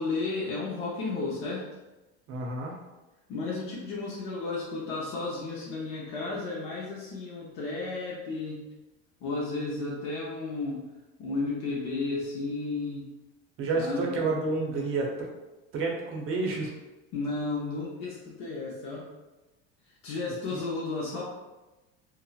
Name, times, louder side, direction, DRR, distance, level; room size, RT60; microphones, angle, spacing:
voice 1, 0.0-1.7 3.3-8.7 9.2-10.8 11.2-13.1 13.7-14.2 17.1-19.1 20.0-21.2, left 3 dB, 60° left, -5 dB, 0.7 m, -33 dB
voice 2, 2.3-2.7 13.6-15.3 15.7-16.7 20.5-20.6, right 3 dB, 45° right, 0 dB, 0.6 m, -29 dB
2.9 x 2.0 x 2.3 m, 1.1 s
cardioid pair, 130°, 30 cm